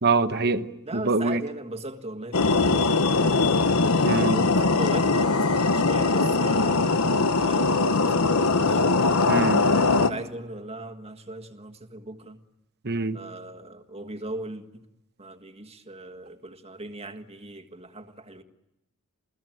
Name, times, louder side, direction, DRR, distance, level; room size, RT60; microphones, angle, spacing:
voice 1, 0.0-0.7 0.9-1.4 4.0-4.4 9.3-9.6 12.8-13.2, right 3 dB, 45° right, 1.1 m, -24 dB
voice 2, 0.8-3.6 4.3-8.9 10.0-12.4 13.1-14.8 15.2-18.4, right 2 dB, 25° right, 1.6 m, -39 dB
sound 1, 2.3-10.1, left 3 dB, 75° left, 1.1 m, -21 dB
28.5 x 17.0 x 9.1 m
head